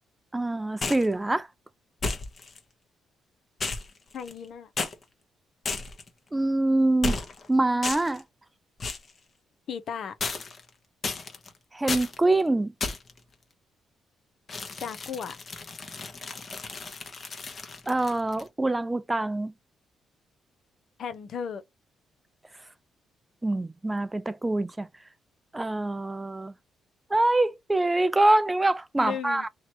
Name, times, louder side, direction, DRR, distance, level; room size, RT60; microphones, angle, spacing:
voice 1, 0.3-1.5 6.3-7.2 7.5-8.2 11.7-12.7 17.9-19.5 23.4-24.9 25.5-26.5 27.1-29.5, right 2 dB, 15° right, 0.4 m, -25 dB
sound 1, 0.8-1.1 2.0-2.6 3.6-4.4 4.8-4.9 5.6-6.1 7.0-7.5 7.8-8.2 8.8-9.1 10.2-10.7 11.0-11.5 11.9-12.2 12.8-13.2 14.5-18.5, left 3 dB, 40° left, 1.1 m, -33 dB
voice 2, 4.1-4.7 9.7-10.2 14.8-15.3 21.0-21.6 29.0-29.5, left 7 dB, 60° left, 0.8 m, -35 dB
3.1 x 2.8 x 4.3 m
cardioid pair, 90°, 0 cm